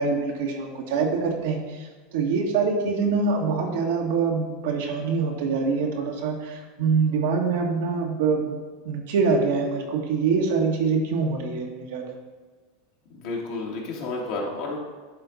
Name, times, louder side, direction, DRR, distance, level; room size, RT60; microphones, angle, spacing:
voice 1, 0.0-12.1, right 4 dB, 75° right, 1 dB, 1.4 m, -25 dB
voice 2, 13.1-14.8, left 3 dB, 65° left, -2 dB, 2.1 m, -31 dB
11.0 x 3.9 x 4.0 m, 1.3 s
supercardioid pair, 120°, 0 cm